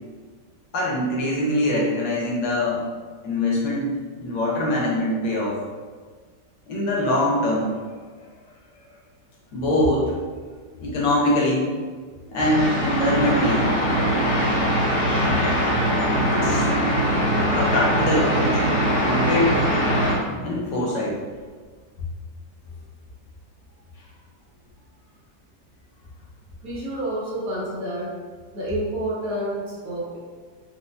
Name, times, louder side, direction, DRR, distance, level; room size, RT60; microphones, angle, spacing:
voice 1, 0.7-2.8 3.2-5.6 6.7-7.7 9.5-10.1 10.8-11.8 12.3-13.7 16.3-16.7 17.5-18.6 19.0-19.6 20.4-21.2, left 1 dB, 80° left, -4 dB, 1.5 m, -23 dB
sound 1, 12.4-20.1, equal, 65° left, 1.3 m, -21 dB
voice 2, 26.6-28.2 28.5-30.2, right 1 dB, 60° right, -6 dB, 1.1 m, -29 dB
4.5 x 2.0 x 2.5 m, 1.5 s
omnidirectional pair, 1.9 m